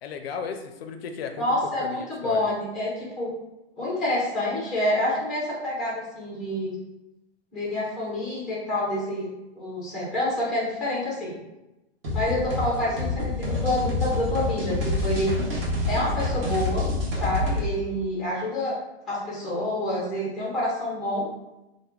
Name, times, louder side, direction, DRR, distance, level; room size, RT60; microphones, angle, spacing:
voice 1, 0.0-1.5 1.8-2.5 12.9-13.1, left 6 dB, 65° left, 6 dB, 0.4 m, -35 dB
voice 2, 1.3-3.3 3.8-6.8 7.5-9.3 9.6-11.4 12.1-15.3 15.9-16.9 17.1-18.8 19.1-21.3, left 1 dB, ahead, -6 dB, 0.4 m, -27 dB
sound 1, 12.0-17.7, left 2 dB, 60° right, 1.2 m, -27 dB
2.8 x 2.1 x 3.4 m, 0.96 s
hypercardioid pair, 160°, 33 cm